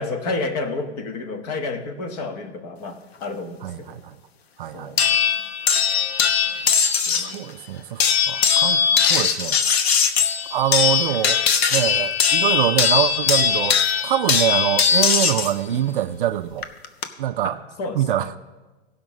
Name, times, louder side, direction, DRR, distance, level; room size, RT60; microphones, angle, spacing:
voice 1, 0.0-4.0 4.7-5.0 7.1-7.5 15.6-15.8 17.4-18.3, left 3 dB, 35° left, 7 dB, 1.2 m, -31 dB
voice 2, 3.6-4.2 4.6-5.2 7.2-9.6 10.5-11.4 11.7-16.7 17.2-17.6 17.9-18.4, right 12 dB, 55° right, 12 dB, 0.5 m, -24 dB
sound 1, 5.0-7.3 8.0-15.5 16.6-17.0, left 7 dB, 65° left, 1.1 m, -20 dB
16.5 x 5.8 x 6.2 m, 1.3 s
hypercardioid pair, 160°, 33 cm